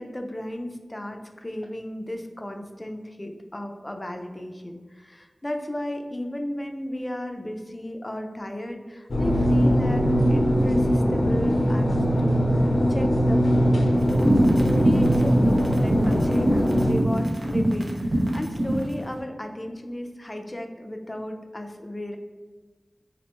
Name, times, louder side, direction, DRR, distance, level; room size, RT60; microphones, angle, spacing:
voice 1, 0.0-11.9 12.2-12.6 12.9-13.8 14.6-22.2, left 1 dB, 25° left, 4 dB, 0.4 m, -34 dB
sound 1, 9.1-16.9, equal, 80° left, 0.6 m, -21 dB
sound 2, 14.0-18.9, right 1 dB, 70° right, 0.5 m, -24 dB
3.4 x 2.1 x 2.9 m, 1.4 s
wide cardioid pair, 50°, 0 cm